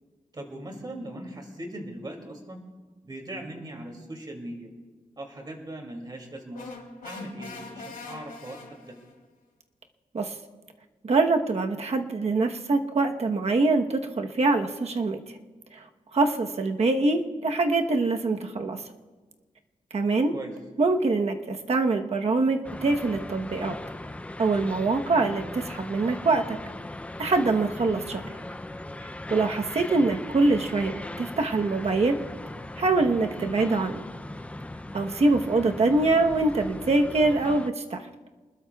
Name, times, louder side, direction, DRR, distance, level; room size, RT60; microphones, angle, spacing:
voice 1, 0.3-2.6 3.0-4.7 5.2-6.7 7.0-8.6 8.9-9.0 20.3-20.5 29.9-30.0, right 1 dB, 30° right, 2 dB, 2.6 m, -39 dB
sound 1, 6.5-9.2, left 3 dB, 90° left, 3.1 m, -42 dB
voice 2, 11.0-15.2 15.7-15.8 16.1-18.8 19.9-20.3 20.8-23.8 24.4-26.6 27.2-28.2 29.3-32.2 32.8-34.0 34.9-38.0, right 3 dB, 50° right, 4 dB, 1.1 m, -24 dB
sound 2, 22.6-37.7, left 1 dB, 10° left, 0.4 m, -39 dB
28.0 x 20.5 x 2.4 m, 1.3 s
wide cardioid pair, 175°, 14 cm